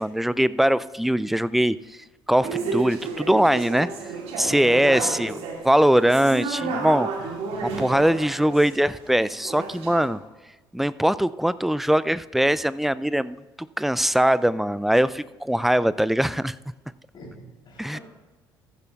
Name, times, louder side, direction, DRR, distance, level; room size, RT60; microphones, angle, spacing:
voice 1, 0.0-2.0 2.3-3.9 4.4-5.4 5.6-7.1 7.6-10.2 10.7-13.4 13.8-16.6 17.8-18.0, right 1 dB, ahead, 17 dB, 0.3 m, -21 dB
sound 1, 2.4-10.1, right 4 dB, 60° right, 2.0 m, -32 dB
voice 2, 4.4-5.4 17.1-18.0, left 1 dB, 40° left, 1 dB, 3.3 m, -37 dB
14.5 x 11.0 x 2.3 m, 1.2 s
figure-of-eight pair, 55°, 12 cm